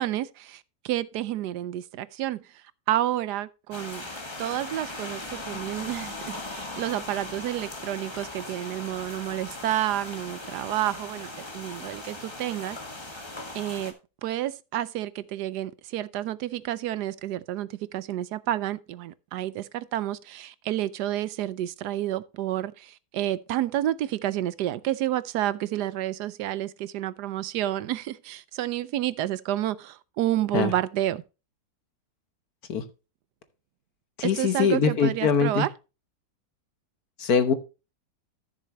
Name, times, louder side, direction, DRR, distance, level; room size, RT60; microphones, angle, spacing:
voice 1, 0.0-2.4 2.9-4.0 4.4-12.8 13.5-13.9 14.2-31.2 34.2-35.7, right 13 dB, 70° right, 1.1 m, -30 dB
sound 1, 3.7-13.9, left 2 dB, 15° left, 1.3 m, -39 dB
voice 2, 34.2-35.7 37.2-37.5, left 6 dB, 60° left, 1.5 m, -22 dB
13.5 x 6.8 x 3.0 m
omnidirectional pair, 1.9 m